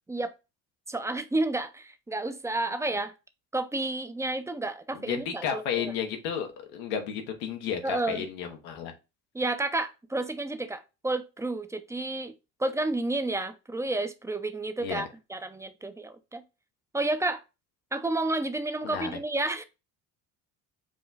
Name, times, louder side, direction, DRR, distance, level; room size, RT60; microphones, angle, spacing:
voice 1, 0.9-3.1 3.5-5.9 7.8-8.2 9.3-12.3 12.6-16.4 16.9-17.4 17.9-19.6, right 2 dB, 10° right, 0.4 m, -31 dB
voice 2, 4.9-8.9 14.8-15.1 18.8-19.1, left 8 dB, 90° left, 1.0 m, -32 dB
4.9 x 2.2 x 3.9 m
supercardioid pair, 85°, 38 cm